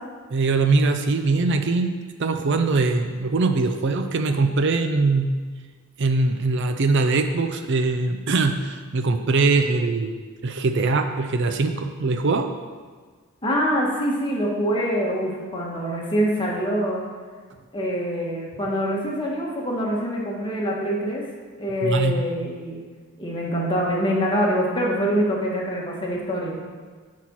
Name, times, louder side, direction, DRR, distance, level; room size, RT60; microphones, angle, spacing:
voice 1, 0.3-1.9 2.2-5.3 6.0-10.1 10.4-12.5 21.8-22.2, right 3 dB, 55° right, 7 dB, 0.5 m, -22 dB
voice 2, 13.4-17.0 17.7-21.2 21.6-22.8 23.2-26.5, equal, 20° left, -3 dB, 1.4 m, -24 dB
10.0 x 4.2 x 6.1 m, 1.5 s
head